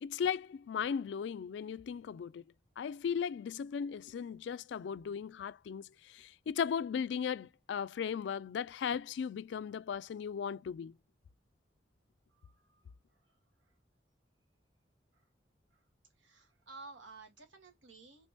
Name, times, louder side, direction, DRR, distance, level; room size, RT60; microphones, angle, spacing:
voice 1, 0.0-2.4 2.8-5.8 6.1-10.9, left 7 dB, 70° left, 0.3 m, -37 dB
voice 2, 12.3-12.8 13.3-13.4 15.1-15.2 15.7-15.8 16.2-18.3, right 3 dB, 90° right, 1.4 m, -54 dB
3.5 x 2.9 x 2.7 m
head